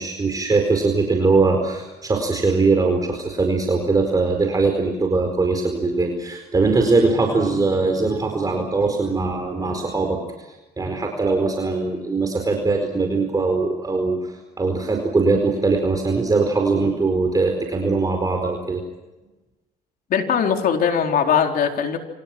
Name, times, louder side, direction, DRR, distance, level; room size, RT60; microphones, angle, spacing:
voice 1, 0.0-10.5 10.8-18.8, right 3 dB, 20° right, 3 dB, 4.7 m, -21 dB
voice 2, 20.1-22.0, left 7 dB, 60° left, 3 dB, 4.1 m, -20 dB
29.5 x 26.5 x 6.2 m, 1.1 s
cardioid pair, 110°, 17 cm